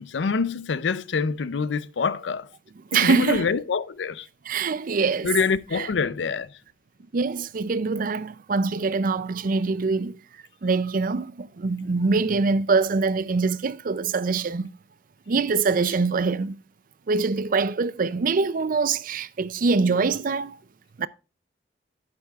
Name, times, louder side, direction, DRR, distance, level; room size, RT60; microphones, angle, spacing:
voice 1, 0.0-2.5 2.9-4.3 5.2-6.5, left 5 dB, 85° left, 0.5 m, -26 dB
voice 2, 2.9-3.5 4.5-5.3 5.7-5.9 7.1-10.2 10.6-14.7 15.3-16.6 17.1-20.6 21.0-21.1, right 4 dB, 50° right, 0.5 m, -24 dB
11.0 x 8.5 x 2.4 m
head